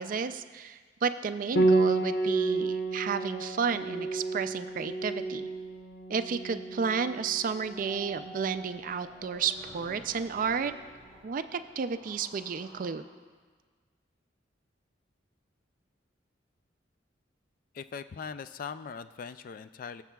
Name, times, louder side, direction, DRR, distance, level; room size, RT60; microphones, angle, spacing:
voice 1, 0.0-5.5 6.1-10.7 11.2-13.0, right 6 dB, 45° right, 11 dB, 0.4 m, -32 dB
Piano, 1.6-10.9, right 2 dB, 85° left, 0.8 m, -31 dB
sound 1, 7.6-12.9, equal, 10° left, 3.2 m, -51 dB
voice 2, 17.7-20.0, left 6 dB, 50° left, 12 dB, 0.3 m, -40 dB
21.0 x 7.3 x 2.3 m, 1.5 s
head